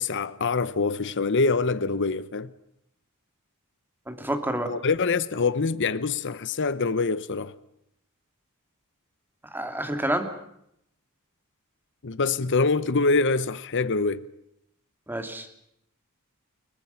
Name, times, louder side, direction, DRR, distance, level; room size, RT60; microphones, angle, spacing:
voice 1, 0.0-2.5 4.7-7.5 12.0-14.2, left 4 dB, 55° left, 0.9 m, -25 dB
voice 2, 4.1-4.7 9.5-10.3 15.1-15.5, right 1 dB, 10° right, 2.8 m, -29 dB
30.0 x 22.5 x 5.8 m
head